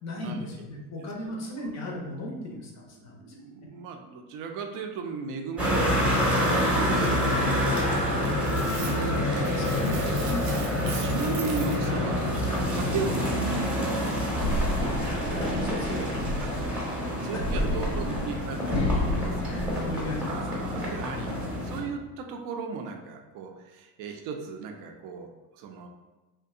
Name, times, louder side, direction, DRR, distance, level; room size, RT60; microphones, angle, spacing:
voice 1, 0.0-2.7 3.0-3.4 9.6-10.8 15.1-16.4 19.5-20.4, left 1 dB, 35° left, -1 dB, 0.6 m, -36 dB
voice 2, 0.7-1.1 1.6-1.8 2.2-9.6 11.0-14.5 16.4-19.4 20.3-25.9, right 5 dB, 45° right, 4 dB, 0.4 m, -37 dB
sound 1, 5.6-21.8, left 1 dB, 5° right, 0.7 m, -27 dB
sound 2, 8.4-9.2 9.4-11.9, right 4 dB, 85° right, 0.7 m, -40 dB
sound 3, 14.3-16.8 17.4-20.4 20.8-21.4, left 1 dB, 85° left, 0.9 m, -31 dB
2.6 x 2.2 x 2.4 m, 1.1 s
hypercardioid pair, 75°, 48 cm